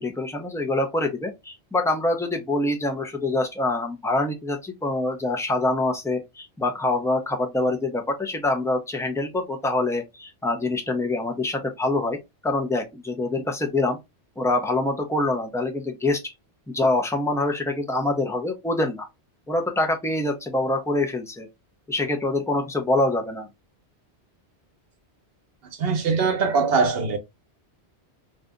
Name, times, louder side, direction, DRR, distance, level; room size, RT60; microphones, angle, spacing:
voice 1, 0.0-14.0 14.4-16.3 16.7-19.1 19.5-21.5 21.9-23.5, left 2 dB, 5° left, 0.5 m, -25 dB
voice 2, 25.8-27.2, right 4 dB, 65° right, 1.0 m, -21 dB
2.7 x 2.5 x 3.5 m
omnidirectional pair, 1.1 m